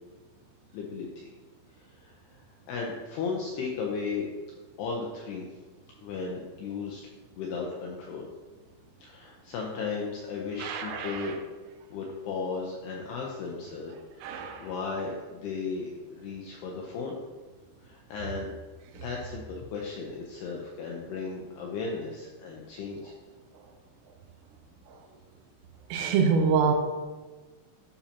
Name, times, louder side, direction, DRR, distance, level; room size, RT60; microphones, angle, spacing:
voice 1, 0.7-1.3 1.7-4.3 4.8-5.5 6.0-7.0 7.4-8.3 9.0-11.4 11.9-17.2 17.8-18.5 18.9-23.1, left 4 dB, 80° left, -1 dB, 2.3 m, -35 dB
voice 2, 10.6-11.3 14.2-14.7 25.9-26.7, right 6 dB, 90° right, 3 dB, 3.4 m, -26 dB
12.0 x 7.1 x 2.9 m, 1.3 s
omnidirectional pair, 5.8 m